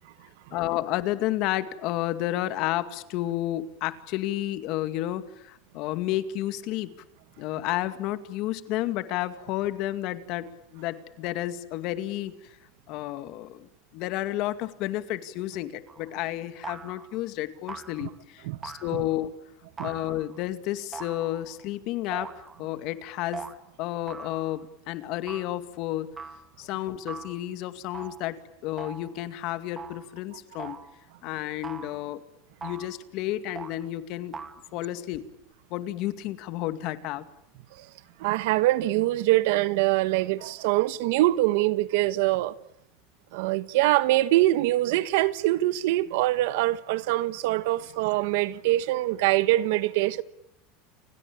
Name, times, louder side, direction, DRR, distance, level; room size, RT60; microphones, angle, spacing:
voice 1, 0.5-6.9 7.4-12.6 12.9-19.4 19.8-23.5 23.8-26.1 26.6-30.8 31.2-32.2 32.6-34.4 34.7-35.3 35.7-37.3, left 14 dB, 50° left, 2.2 m, -31 dB
sound 1, 15.9-16.2 16.6-17.2 17.7-18.2 18.6-19.2 19.8-20.4 20.9-21.6 22.1-22.7 23.3-23.6 24.1-24.6 25.3-25.6 26.2-26.5 27.1-27.5 27.9-28.3 28.8-29.2 29.8-30.1 30.6-31.0 31.6-32.1 32.6-33.0 33.5-33.8 34.3-34.6, right 5 dB, 15° right, 2.1 m, -41 dB
voice 2, 38.2-42.5 43.3-50.2, right 17 dB, 70° right, 1.3 m, -24 dB
29.5 x 22.0 x 8.7 m
supercardioid pair, 145°, 0 cm